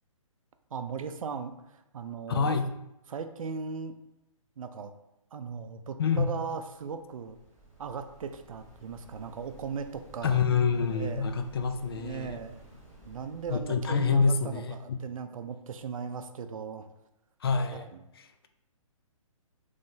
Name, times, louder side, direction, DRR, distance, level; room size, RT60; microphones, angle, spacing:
voice 1, 0.7-2.5 3.1-4.0 4.6-4.9 5.3-7.4 7.8-10.4 10.9-11.2 11.9-12.6 13.0-16.9 17.7-18.0, right 6 dB, 75° right, 8 dB, 0.5 m, -38 dB
voice 2, 2.3-2.7 6.0-6.3 10.2-12.4 13.5-15.0 17.4-17.8, left 5 dB, 45° left, 7 dB, 0.4 m, -27 dB
Waves surf, 6.9-14.3, right 1 dB, 10° left, 1.2 m, -54 dB
5.5 x 3.2 x 2.6 m, 0.87 s
hypercardioid pair, 165°, 18 cm